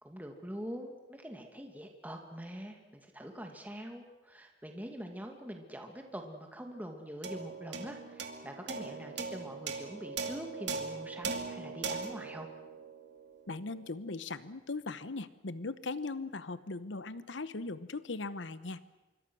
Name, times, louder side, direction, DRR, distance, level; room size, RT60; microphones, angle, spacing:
voice 1, 0.0-12.5, equal, 10° right, 3 dB, 2.3 m, -44 dB
sound 1, 7.2-13.8, right 4 dB, 70° right, 2.4 m, -40 dB
voice 2, 13.5-18.8, left 3 dB, 80° left, 14 dB, 1.0 m, -39 dB
25.5 x 24.5 x 6.3 m, 1.1 s
head